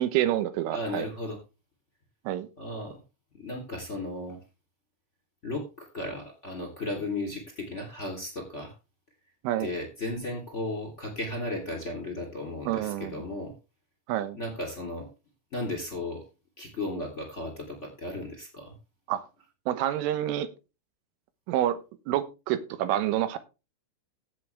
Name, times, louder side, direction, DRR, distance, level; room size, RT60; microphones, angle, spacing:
voice 1, 0.0-1.1 2.3-2.5 9.4-9.7 12.7-13.1 14.1-14.4 19.1-19.3 19.7-20.5 21.5-21.8 22.1-23.4, right 12 dB, 90° right, 12 dB, 3.6 m, -27 dB
voice 2, 0.7-1.4 2.6-3.0 3.3-4.4 5.4-8.7 9.6-13.5 14.3-15.1 15.5-16.2 16.6-18.7, left 2 dB, 20° left, 2 dB, 2.7 m, -35 dB
16.0 x 7.6 x 3.5 m, 0.29 s
omnidirectional pair, 5.6 m